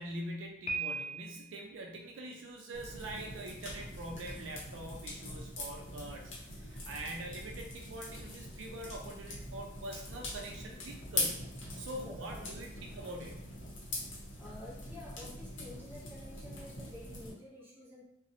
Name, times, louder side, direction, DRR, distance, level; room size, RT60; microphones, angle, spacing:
voice 1, 0.0-13.4, right 1 dB, 70° right, 1 dB, 0.4 m, -44 dB
Piano, 0.7-1.6, right 3 dB, 35° left, 0.3 m, -37 dB
sound 1, 2.7-17.3, left 2 dB, 75° left, 0.7 m, -42 dB
voice 2, 11.8-12.5 14.4-18.0, left 1 dB, 10° right, -6 dB, 0.7 m, -50 dB
2.6 x 2.0 x 2.6 m, 0.82 s
head